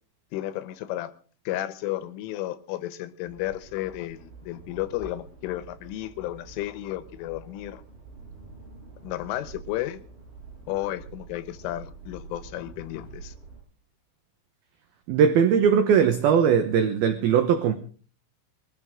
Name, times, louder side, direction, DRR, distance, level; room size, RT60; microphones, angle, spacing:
voice 1, 0.3-1.1 1.5-7.8 9.0-10.0 10.7-13.4, left 14 dB, 85° left, 3.5 m, -33 dB
sound 1, 3.3-13.6, right 4 dB, 50° right, 7.8 m, -47 dB
voice 2, 15.1-17.7, right 7 dB, 70° right, 2.4 m, -20 dB
22.5 x 14.0 x 3.7 m
omnidirectional pair, 5.6 m